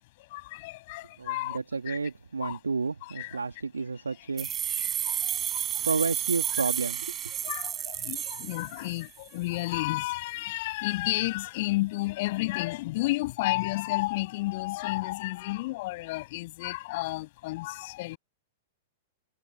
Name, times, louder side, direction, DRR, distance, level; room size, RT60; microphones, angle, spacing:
voice 1, 0.3-1.6 1.9-2.0 2.4-2.6 3.2-3.3 4.8-4.9 7.4-18.2, left 20 dB, 50° left, 7.6 m, -31 dB
voice 2, 1.2-4.5 5.8-7.2, right 4 dB, 80° right, 2.5 m, -31 dB
sound 1, 4.4-9.2, right 10 dB, 25° right, 7.9 m, -31 dB
figure-of-eight pair, 100°, 0 cm